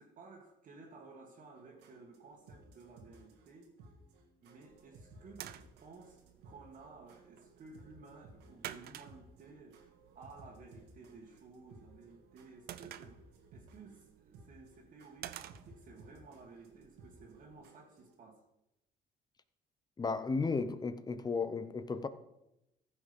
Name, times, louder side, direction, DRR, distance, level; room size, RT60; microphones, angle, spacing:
voice 1, 0.0-3.7 4.4-9.8 10.2-18.4, right 4 dB, 50° right, 1.8 m, -55 dB
sound 1, 1.6-18.1, right 2 dB, 90° right, 1.9 m, -60 dB
sound 2, 4.6-17.6, right 12 dB, 65° right, 0.6 m, -53 dB
voice 2, 20.0-22.1, left 4 dB, 25° left, 0.7 m, -34 dB
15.0 x 6.3 x 5.2 m
cardioid pair, 110°, 17 cm